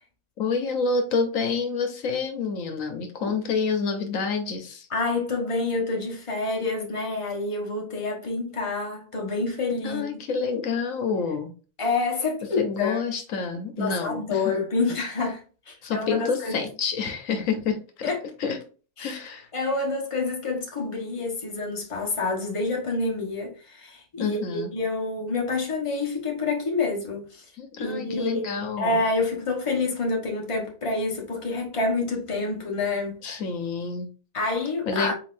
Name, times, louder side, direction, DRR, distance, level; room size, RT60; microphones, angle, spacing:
voice 1, 0.4-4.9 9.8-11.5 12.6-14.4 15.8-18.1 18.4-18.6 19.0-19.5 24.2-24.7 27.6-29.0 33.2-34.1 34.9-35.1, left 5 dB, 75° left, 1.2 m, -28 dB
voice 2, 4.9-10.0 11.8-13.0 13.8-16.7 18.0-18.2 19.0-19.2 19.5-27.4 27.8-28.5 28.8-33.2 34.3-35.1, left 3 dB, 25° left, 1.2 m, -28 dB
4.3 x 3.9 x 2.5 m
omnidirectional pair, 1.4 m